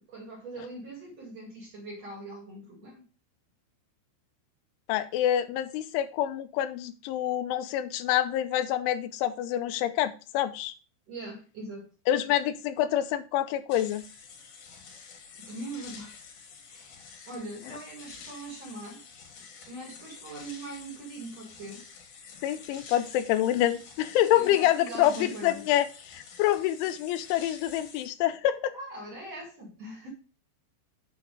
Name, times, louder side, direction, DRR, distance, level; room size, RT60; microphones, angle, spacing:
voice 1, 0.0-3.0 11.1-11.9 15.4-16.2 16.7-19.0 19.4-21.8 24.3-25.6 28.7-30.1, right 2 dB, 45° right, 2.6 m, -41 dB
voice 2, 4.9-10.7 12.1-14.0 22.4-25.9 26.1-28.8, left 12 dB, 90° left, 3.1 m, -27 dB
sound 1, 13.7-28.1, left 5 dB, 60° left, 2.3 m, -49 dB
8.2 x 4.9 x 4.9 m
omnidirectional pair, 5.3 m